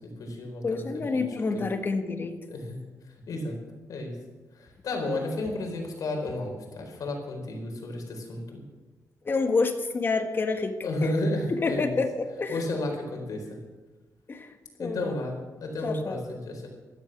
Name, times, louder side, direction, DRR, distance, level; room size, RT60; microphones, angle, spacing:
voice 1, 0.0-0.9 1.5-1.7 2.5-2.8 3.3-3.6 3.9-4.1 4.5-8.7 10.8-12.0 12.5-13.6 14.8-16.7, left 2 dB, 75° left, 2 dB, 4.4 m, -32 dB
voice 2, 0.6-2.4 9.2-11.1 11.5-12.6 14.3-14.5 14.8-15.1 15.8-16.2, left 4 dB, 35° left, 6 dB, 1.6 m, -28 dB
16.5 x 13.0 x 6.1 m, 1.2 s
wide cardioid pair, 140°, 6 cm